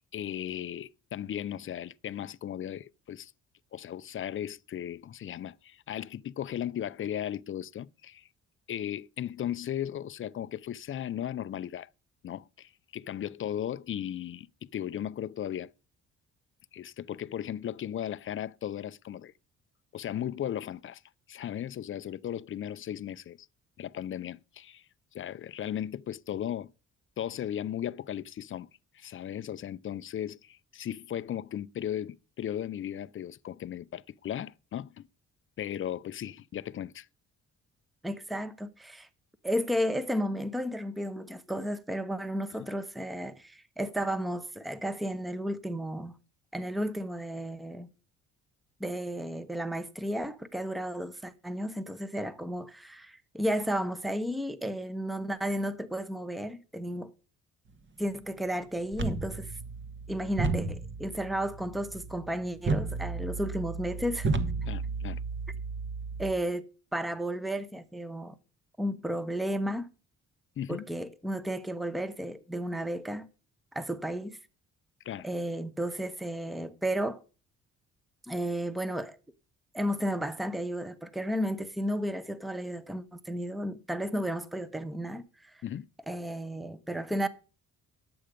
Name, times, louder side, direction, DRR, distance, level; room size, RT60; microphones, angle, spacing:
voice 1, 0.1-3.3 3.7-8.3 8.7-11.9 12.2-15.7 16.7-19.3 19.9-21.0 21.3-23.5 23.8-24.8 25.1-26.7 27.2-28.7 28.9-35.1 35.6-37.1 64.6-65.2 70.6-70.8 75.1-75.3 85.6-85.9, left 10 dB, 45° left, 0.5 m, -36 dB
voice 2, 38.0-39.1 39.4-46.1 46.5-47.9 48.8-57.1 58.0-59.5 60.1-64.3 66.2-66.7 66.9-68.3 68.8-69.9 70.7-73.3 73.7-74.4 75.2-77.2 78.3-79.2 79.7-85.6 86.1-87.3, equal, ahead, 0.8 m, -33 dB
sound 1, 58.9-66.3, right 4 dB, 40° right, 1.4 m, -33 dB
11.0 x 7.9 x 5.1 m
cardioid pair, 90°, 30 cm